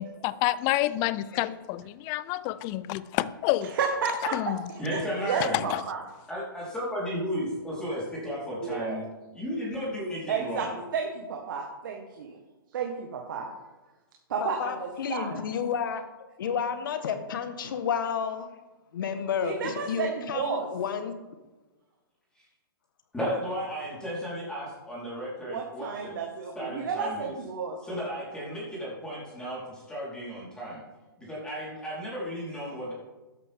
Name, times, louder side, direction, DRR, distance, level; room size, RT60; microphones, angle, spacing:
voice 1, 0.0-3.7 4.3-4.6 5.7-5.8, left 15 dB, 30° left, 18 dB, 0.5 m, -28 dB
voice 2, 1.3-1.6 14.4-16.0 16.4-18.5 18.9-21.1, left 7 dB, 60° left, 9 dB, 1.5 m, -31 dB
voice 3, 3.6-6.0 8.6-9.0 10.3-12.4 12.7-13.5 14.3-15.4 19.4-20.7 25.4-28.0, right 5 dB, 60° right, 1 dB, 1.7 m, -32 dB
voice 4, 4.8-5.6 6.3-9.0 9.3-10.7 22.4-22.5 23.1-26.1 26.5-27.3 27.8-30.8 31.2-32.9, equal, 5° left, -7 dB, 4.3 m, -34 dB
13.0 x 11.0 x 3.7 m, 1.2 s
hypercardioid pair, 125°, 12 cm